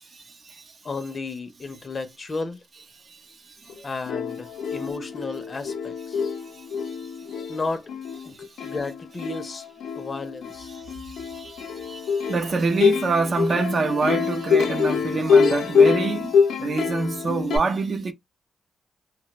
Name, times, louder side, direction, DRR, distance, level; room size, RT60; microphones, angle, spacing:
voice 1, 0.1-0.8 3.0-3.9 6.5-7.5 8.3-8.7 10.7-18.1, right 4 dB, 45° right, 0.5 m, -27 dB
voice 2, 0.8-2.6 3.8-6.2 7.5-7.9 8.2-9.6 10.0-10.7, left 3 dB, 35° left, 0.6 m, -33 dB
Plucked string instrument, 3.7-3.8 4.1-17.6, left 6 dB, 80° left, 0.5 m, -25 dB
2.1 x 2.1 x 2.9 m
cardioid pair, 85°, 0 cm